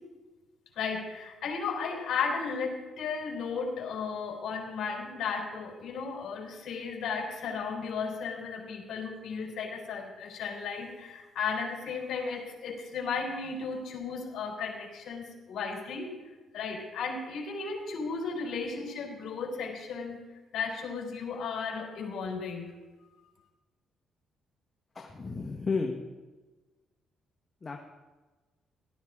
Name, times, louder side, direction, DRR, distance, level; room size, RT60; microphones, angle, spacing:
voice 1, 0.8-16.1 16.5-20.2 20.5-22.7, left 5 dB, 70° left, 0 dB, 3.9 m, -35 dB
voice 2, 24.9-26.0 27.6-27.8, left 4 dB, 30° left, 2 dB, 1.4 m, -32 dB
17.5 x 12.0 x 3.7 m, 1.2 s
cardioid pair, 90°, 0 cm